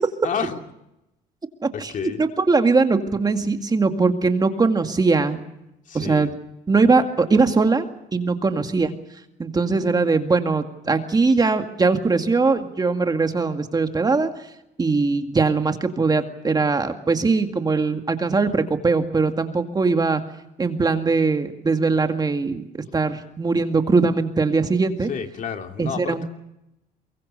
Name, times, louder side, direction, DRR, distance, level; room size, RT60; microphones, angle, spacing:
voice 1, 0.2-0.6 1.7-2.2 5.9-6.3 25.1-26.2, left 7 dB, 50° left, 5 dB, 2.7 m, -30 dB
voice 2, 2.2-5.4 5.9-6.3 6.7-7.9 8.1-8.9 9.4-14.3 14.8-20.2 20.6-25.1 25.8-26.2, right 4 dB, 25° right, 6 dB, 2.1 m, -21 dB
23.0 x 23.0 x 6.8 m, 0.88 s
cardioid pair, 110°, 17 cm